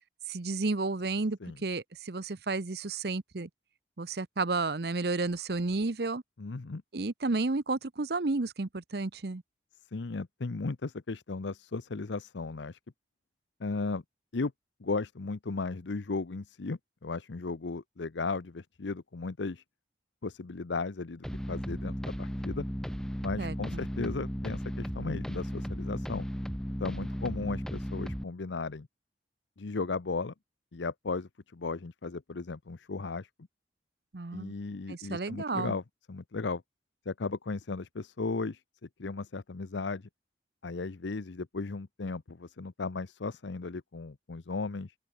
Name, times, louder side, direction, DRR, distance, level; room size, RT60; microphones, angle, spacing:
voice 1, 0.3-3.5 4.0-6.2 6.9-9.4 23.4-23.8 34.1-34.5 34.9-35.8, right 3 dB, 60° right, 0.8 m, -32 dB
voice 2, 6.4-6.8 9.9-12.8 13.6-14.0 14.3-14.5 14.8-19.6 20.2-22.6 23.2-26.3 26.8-28.9 29.6-30.3 30.7-33.3 34.3-35.8 36.1-36.6 37.1-38.6 39.0-40.1 40.6-44.9, left 3 dB, 80° left, 0.7 m, -35 dB
sound 1, 21.2-28.2, equal, 5° left, 0.9 m, -35 dB
open air
head